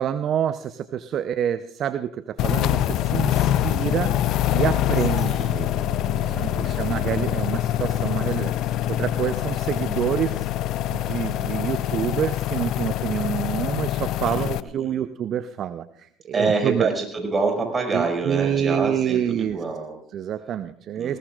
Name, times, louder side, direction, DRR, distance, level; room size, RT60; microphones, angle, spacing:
voice 1, 0.0-4.1 4.5-5.7 6.2-8.5 8.9-10.5 10.9-16.9 17.9-19.6 20.1-21.2, right 9 dB, 50° right, 12 dB, 0.7 m, -27 dB
sound 1, 2.4-14.6, left 12 dB, 60° left, 0.6 m, -24 dB
voice 2, 5.2-6.8 14.3-15.0 16.3-20.0 21.0-21.2, right 4 dB, 25° right, 3 dB, 5.8 m, -27 dB
20.0 x 19.0 x 2.5 m, 0.66 s
hypercardioid pair, 70°, 0 cm